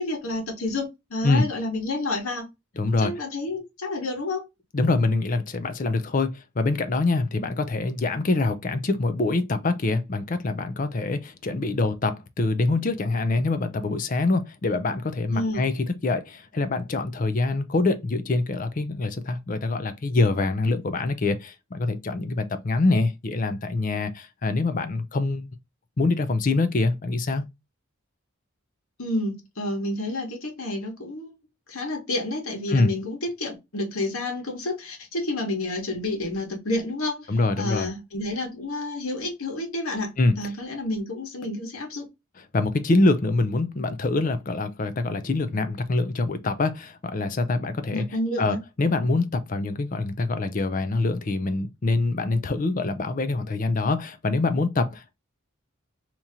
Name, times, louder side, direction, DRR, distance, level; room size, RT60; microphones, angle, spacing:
voice 1, 0.0-2.5 3.0-4.4 7.4-7.5 15.3-15.6 29.0-31.3 31.7-40.1 40.4-42.1 47.9-48.6, left 2 dB, 85° left, 1.4 m, -30 dB
voice 2, 2.8-3.1 4.7-25.5 26.0-27.4 32.7-32.9 37.3-37.9 40.2-40.3 42.5-48.0 48.4-55.1, left 3 dB, 40° left, 0.5 m, -25 dB
2.9 x 2.8 x 3.6 m
head